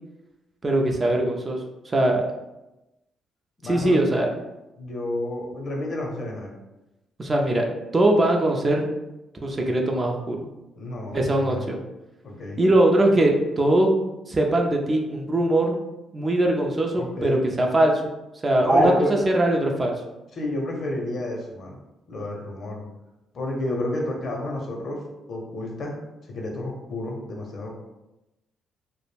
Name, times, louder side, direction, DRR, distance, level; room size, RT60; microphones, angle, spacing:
voice 1, 0.6-1.6 1.9-2.2 3.6-4.3 7.2-7.7 7.9-8.9 9.4-10.4 11.1-11.8 12.6-13.9 14.3-15.8 16.1-17.9 18.4-19.9, right 1 dB, 30° right, 1 dB, 0.4 m, -21 dB
voice 2, 3.6-4.1 4.8-6.6 10.7-11.6 12.2-12.6 16.9-17.4 18.6-19.1 20.3-21.8 22.1-22.9 23.3-25.0 25.3-27.7, left 1 dB, 55° left, 1 dB, 0.6 m, -30 dB
2.3 x 2.0 x 3.2 m, 0.98 s
cardioid pair, 90°, 0 cm